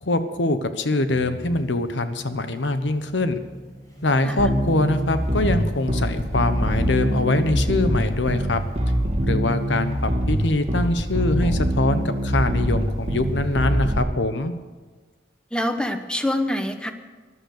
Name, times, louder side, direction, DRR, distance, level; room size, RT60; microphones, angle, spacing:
voice 1, 0.0-3.4 4.0-8.6 9.2-14.5, left 2 dB, 85° left, 10 dB, 1.1 m, -23 dB
sound 1, 1.1-7.5, equal, 20° left, 4.9 m, -40 dB
Bass guitar, 4.4-14.0, equal, 35° right, 1.7 m, -23 dB
voice 2, 15.5-16.9, left 1 dB, 5° left, 7 dB, 0.9 m, -25 dB
14.5 x 11.0 x 6.7 m, 1.4 s
head